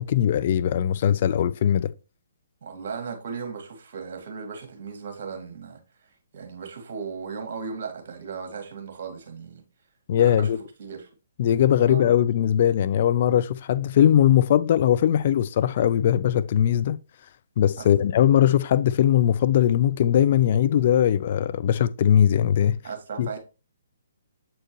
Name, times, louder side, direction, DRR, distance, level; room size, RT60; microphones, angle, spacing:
voice 1, 0.0-1.9 10.1-10.6 11.4-17.0 17.6-22.8 23.2-23.4, left 10 dB, 45° left, 0.3 m, -20 dB
voice 2, 2.6-9.6 10.2-10.5 10.8-11.1 11.8-12.2 17.8-18.0 22.8-23.4, right 5 dB, 50° right, 1.9 m, -37 dB
7.6 x 4.3 x 3.1 m
figure-of-eight pair, 135°, 0 cm